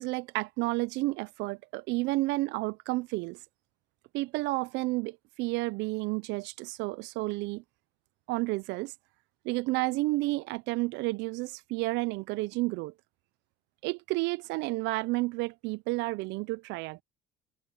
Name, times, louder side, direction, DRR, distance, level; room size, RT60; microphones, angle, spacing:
voice 1, 0.0-3.4 4.1-7.6 8.3-8.9 9.4-12.9 13.8-17.0, right 22 dB, 75° right, 0.7 m, -31 dB
hypercardioid pair, 70°, 19 cm